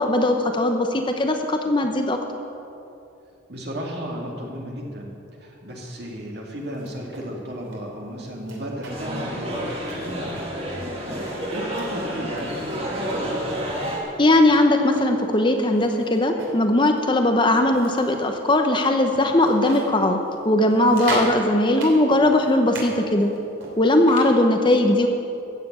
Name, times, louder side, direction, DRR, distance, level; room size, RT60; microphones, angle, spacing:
voice 1, 0.0-2.2 14.2-20.2 20.4-23.3 23.8-25.1, left 1 dB, 25° left, 4 dB, 0.8 m, -19 dB
voice 2, 3.5-5.1 5.4-10.3 11.0-13.8, equal, 55° right, -1 dB, 2.4 m, -34 dB
sound 1, 6.6-7.3 7.6-7.8 8.2-9.2 9.5-9.6 9.9-10.6 11.1-11.9 12.4-13.3 13.8-13.9 14.3-16.6 17.0-17.2 17.6-18.2 18.7-18.8 19.1-19.9 20.3-20.4 20.7-21.3 21.8-22.9 23.2-24.3, right 2 dB, 80° right, 3.1 m, -38 dB
sound 2, 8.9-14.0, equal, 30° right, 2.3 m, -29 dB
14.5 x 7.7 x 8.1 m, 2.7 s
head